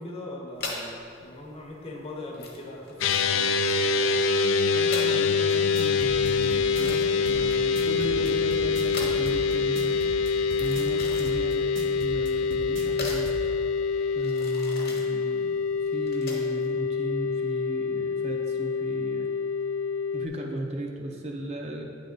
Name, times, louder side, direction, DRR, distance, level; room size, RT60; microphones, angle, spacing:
voice 1, 0.0-4.2, left 2 dB, 30° left, -1 dB, 0.7 m, -40 dB
sound 1, 0.6-16.7, left 2 dB, 50° left, 1.0 m, -41 dB
sound 2, 3.0-20.3, left 5 dB, 75° left, 0.3 m, -25 dB
voice 2, 4.7-13.3 14.1-19.3 20.1-21.8, right 1 dB, 30° right, 0 dB, 0.5 m, -36 dB
sound 3, 5.5-13.4, right 2 dB, 75° right, 0.7 m, -39 dB
9.0 x 3.4 x 3.9 m, 2.6 s
head